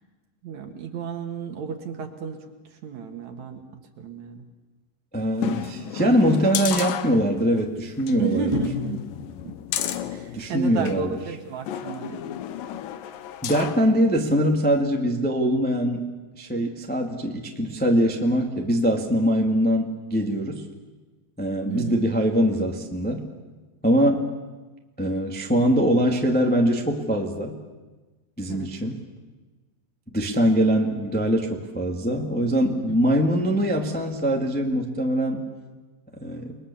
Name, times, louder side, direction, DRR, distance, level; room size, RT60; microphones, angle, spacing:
voice 1, 0.4-2.4 2.7-3.6 4.0-4.4 8.2-9.0 9.4-9.5 10.1-12.2 21.7-22.0 28.5-28.7 32.9-33.1, right 6 dB, 55° right, 5 dB, 2.8 m, -31 dB
voice 2, 5.1-8.5 10.3-11.1 13.4-20.6 21.4-23.3 23.8-24.3 25.0-27.6 28.4-29.0 30.1-35.4 36.2-36.6, equal, 5° left, 1 dB, 1.0 m, -23 dB
sound 1, 5.4-7.6 8.0-8.1 8.5-11.0 11.7-13.9 14.3-14.4, left 11 dB, 75° left, 2.6 m, -32 dB
29.5 x 21.5 x 7.1 m, 1.2 s
omnidirectional pair, 4.3 m